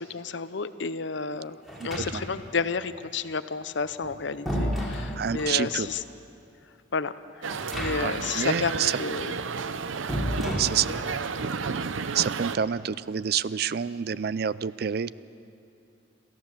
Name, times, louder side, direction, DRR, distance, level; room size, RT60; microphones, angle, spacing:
voice 1, 0.1-1.6 1.8-6.0 6.9-7.1 7.8-9.3, left 4 dB, 65° left, 14 dB, 0.7 m, -31 dB
sound 1, 1.7-2.5 3.8-5.6 7.5-8.3 8.6-8.7 10.1-11.2, equal, ahead, 3.4 m, -32 dB
voice 2, 1.8-2.2 5.2-5.9 8.0-9.0 10.6-11.0 12.1-15.1, right 8 dB, 50° right, 18 dB, 0.4 m, -28 dB
sound 2, 7.4-12.6, right 5 dB, 85° right, 0.7 m, -32 dB
27.5 x 14.5 x 7.3 m, 2.7 s
head